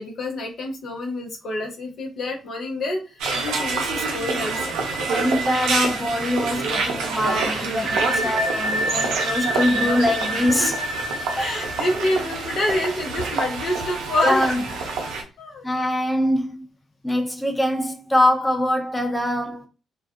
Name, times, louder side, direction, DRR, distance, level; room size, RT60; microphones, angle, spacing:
voice 1, 0.0-4.6 7.6-8.3 10.4-10.7 11.4-14.6 15.4-15.7, left 1 dB, 55° left, 0.7 m, -27 dB
sound 1, 3.2-15.2, right 3 dB, 70° right, 0.5 m, -26 dB
voice 2, 5.1-10.8 11.1-11.6 14.2-14.6 15.6-16.7 17.0-19.7, left 1 dB, 10° left, 0.6 m, -23 dB
2.3 x 2.2 x 2.6 m
figure-of-eight pair, 40°, 0 cm